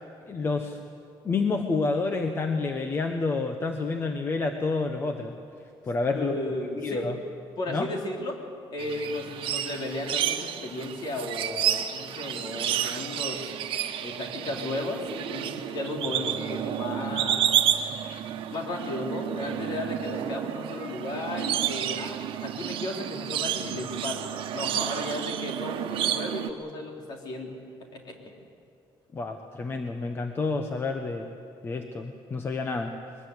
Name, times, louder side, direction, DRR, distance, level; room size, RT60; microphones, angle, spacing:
voice 1, 0.3-0.8 1.2-5.3 5.9-6.4 6.8-7.2 7.7-7.9 29.1-31.3 31.6-32.9, left 3 dB, 25° left, 5 dB, 1.0 m, -29 dB
voice 2, 6.1-7.1 7.6-8.4 8.7-13.5 14.0-17.8 18.5-24.2 24.5-28.3, left 2 dB, 50° left, 1 dB, 3.5 m, -34 dB
sound 1, 8.8-26.5, right 10 dB, 70° right, 1.2 m, -30 dB
22.0 x 20.5 x 8.1 m, 2.5 s
cardioid pair, 170°, 9 cm